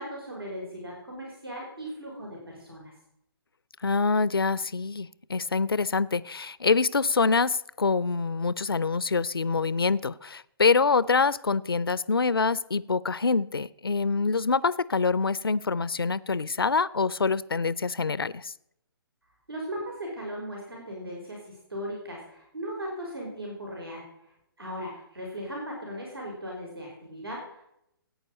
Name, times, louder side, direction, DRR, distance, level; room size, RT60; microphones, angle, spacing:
voice 1, 0.0-2.9 19.5-24.0 24.6-27.7, equal, 80° right, -2 dB, 5.0 m, -37 dB
voice 2, 3.8-18.5, left 4 dB, 75° left, 20 dB, 0.5 m, -25 dB
16.0 x 9.2 x 5.3 m, 0.78 s
figure-of-eight pair, 130°, 12 cm